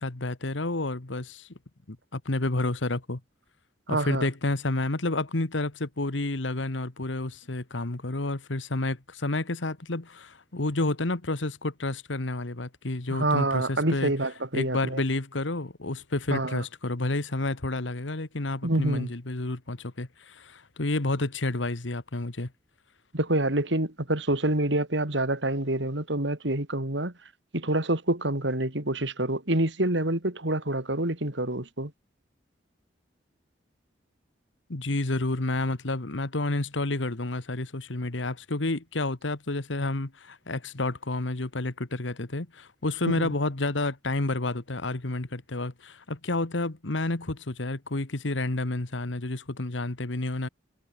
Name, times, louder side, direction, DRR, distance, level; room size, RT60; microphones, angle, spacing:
voice 1, 0.0-1.5 1.9-3.2 3.9-14.1 14.5-22.5 34.7-50.5, left 2 dB, 75° left, 1.6 m, -30 dB
voice 2, 3.9-4.3 13.1-15.0 16.3-16.6 18.6-19.1 23.1-27.1 27.5-31.9 43.1-43.3, right 1 dB, 70° right, 3.5 m, -27 dB
head